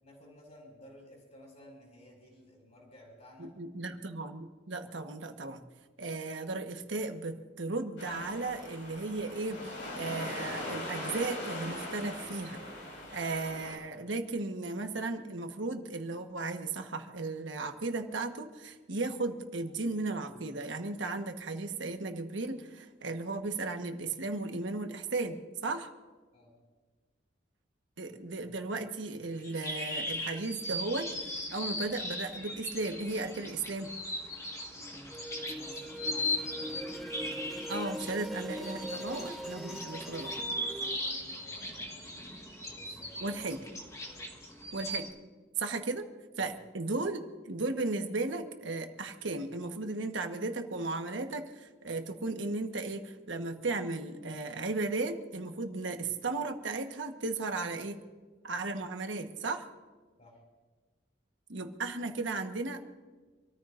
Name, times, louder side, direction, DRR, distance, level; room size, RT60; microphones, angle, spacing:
voice 1, 0.0-3.5 26.3-26.6 34.7-36.8 38.8-39.1 39.6-42.1 42.6-43.4 43.9-44.3 46.4-46.5 60.2-60.4, left 1 dB, 40° left, -4 dB, 4.6 m, -56 dB
voice 2, 3.4-5.6 6.0-12.6 13.1-25.9 28.0-33.9 37.7-40.3 43.2-43.6 44.7-45.1 45.6-46.1 46.4-58.0 58.4-59.7 61.5-62.8, right 3 dB, 80° right, 6 dB, 1.3 m, -35 dB
sound 1, 8.0-13.8, left 1 dB, 90° left, 5.4 m, -40 dB
sound 2, 29.4-45.1, left 1 dB, 15° left, 1.7 m, -38 dB
sound 3, 34.9-41.0, right 1 dB, ahead, 0.7 m, -41 dB
27.5 x 14.0 x 2.6 m, 1.4 s
head